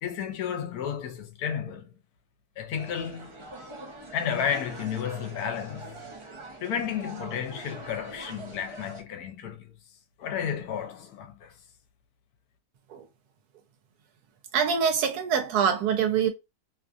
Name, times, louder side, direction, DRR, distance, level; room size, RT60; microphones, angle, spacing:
voice 1, 0.0-1.9 2.6-3.4 4.1-6.0 6.6-9.7 10.2-11.5, left 8 dB, 75° left, 1.1 m, -32 dB
sound 1, 2.7-9.0, right 2 dB, 40° right, 0.4 m, -44 dB
voice 2, 14.5-16.3, right 7 dB, 80° right, 1.3 m, -24 dB
3.0 x 2.4 x 2.4 m
omnidirectional pair, 1.6 m